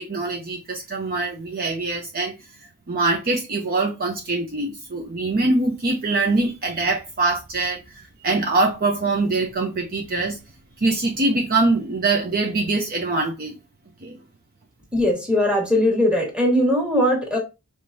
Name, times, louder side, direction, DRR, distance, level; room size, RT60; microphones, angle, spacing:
voice 1, 0.0-2.3 2.6-10.4 10.8-13.6 14.0-14.2, right 3 dB, 40° right, 0.7 m, -23 dB
voice 2, 14.9-17.4, left 1 dB, 5° right, 1.5 m, -20 dB
5.1 x 3.3 x 2.7 m
head